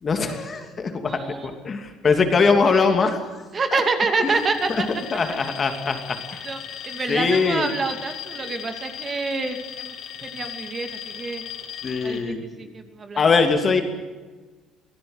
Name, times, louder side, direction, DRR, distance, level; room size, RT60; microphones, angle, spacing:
voice 1, 0.0-3.8 4.2-4.8 5.1-6.4 7.1-7.7 11.8-12.6 13.2-13.8, left 4 dB, 25° left, 6 dB, 2.7 m, -22 dB
voice 2, 1.1-1.6 3.5-4.7 6.4-6.6 6.8-9.9 10.2-11.4 12.0-13.2, right 4 dB, 25° right, 7 dB, 2.4 m, -27 dB
Alarm, 4.2-12.2, left 9 dB, 50° left, 4.4 m, -37 dB
25.5 x 18.0 x 8.0 m, 1.3 s
cardioid pair, 160°, 0 cm